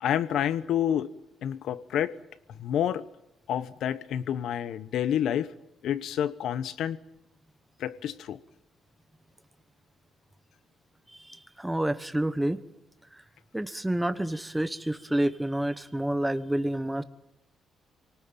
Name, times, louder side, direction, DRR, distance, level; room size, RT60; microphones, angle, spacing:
voice 1, 0.0-1.1 1.4-2.2 2.6-3.1 3.5-5.5 5.8-7.0 7.8-8.4, left 10 dB, 75° left, 15 dB, 1.0 m, -28 dB
voice 2, 11.1-12.6 13.1-13.2 13.5-17.0, right 1 dB, 10° right, 11 dB, 1.2 m, -29 dB
25.0 x 19.0 x 9.0 m, 0.89 s
cardioid pair, 90°, 0 cm